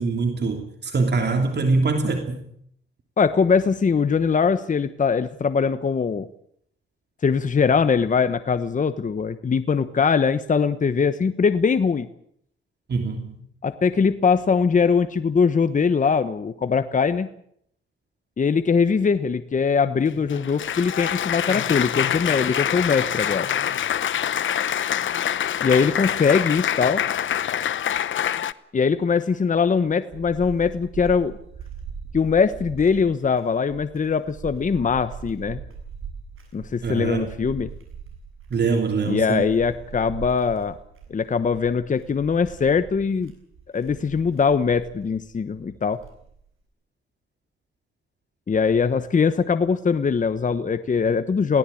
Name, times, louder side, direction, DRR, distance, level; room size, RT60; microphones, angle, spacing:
voice 1, 0.0-2.4 12.9-13.3 36.8-37.3 38.5-39.5, right 4 dB, 55° right, 5 dB, 3.2 m, -23 dB
voice 2, 3.2-6.3 7.2-12.1 13.6-17.3 18.4-23.5 25.6-27.0 28.7-31.4 32.1-35.6 36.5-37.7 39.0-40.7 41.1-43.3 43.7-46.0 48.5-51.6, left 5 dB, 40° left, 11 dB, 1.1 m, -21 dB
Applause, 20.1-28.5, left 10 dB, 70° left, 0.9 m, -25 dB
sound 1, 29.6-46.5, right 6 dB, 80° right, 7.7 m, -41 dB
22.5 x 17.0 x 8.6 m, 0.69 s
cardioid pair, 110°, 21 cm